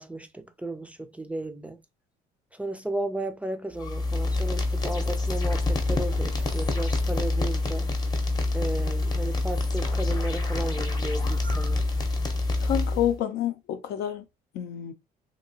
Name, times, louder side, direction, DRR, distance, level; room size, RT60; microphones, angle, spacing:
voice 1, 0.0-1.8 2.5-7.9 8.5-11.8, right 2 dB, 10° right, 0.4 m, -34 dB
sound 1, 3.8-13.2, left 2 dB, 25° left, 0.7 m, -26 dB
voice 2, 12.6-14.2 14.5-14.9, left 11 dB, 75° left, 0.5 m, -28 dB
2.9 x 2.8 x 2.7 m
cardioid pair, 110°, 17 cm